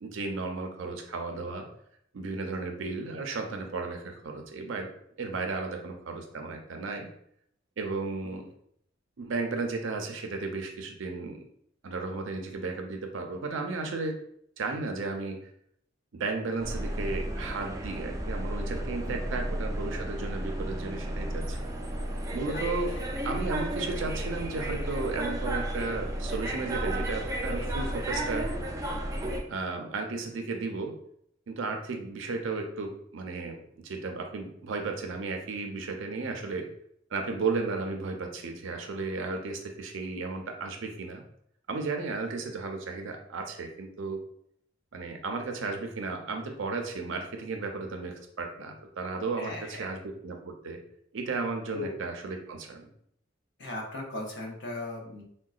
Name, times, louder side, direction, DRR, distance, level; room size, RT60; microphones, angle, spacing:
voice 1, 0.0-1.7 2.1-4.9 5.2-7.1 7.8-8.5 9.2-11.4 11.8-14.2 14.6-15.4 16.2-21.6 22.3-22.9 23.2-28.5 29.5-30.9 31.5-36.7 37.1-41.2 41.7-44.2 44.9-50.8 51.1-52.9, right 3 dB, 75° right, 4 dB, 0.5 m, -34 dB
voice 2, 8.2-8.5 19.0-19.5 22.5-22.6 22.9-23.0 49.4-49.9 51.7-51.9 53.6-55.2, left 2 dB, 65° left, -1 dB, 0.7 m, -38 dB
sound 1, 16.6-29.4, right 1 dB, 15° right, 0.3 m, -33 dB
3.7 x 2.2 x 2.3 m, 0.69 s
head